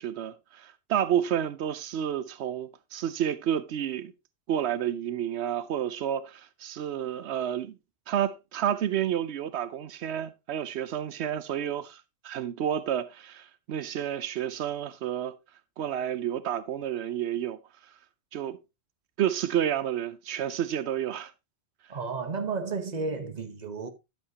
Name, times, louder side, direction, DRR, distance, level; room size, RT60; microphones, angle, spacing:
voice 1, 0.0-4.1 4.5-7.7 8.1-15.3 15.8-17.6 18.3-18.6 19.2-21.3, right 10 dB, 85° right, 0.9 m, -30 dB
voice 2, 21.9-23.9, right 4 dB, 40° right, 1.2 m, -32 dB
11.5 x 7.3 x 2.8 m
omnidirectional pair, 1.1 m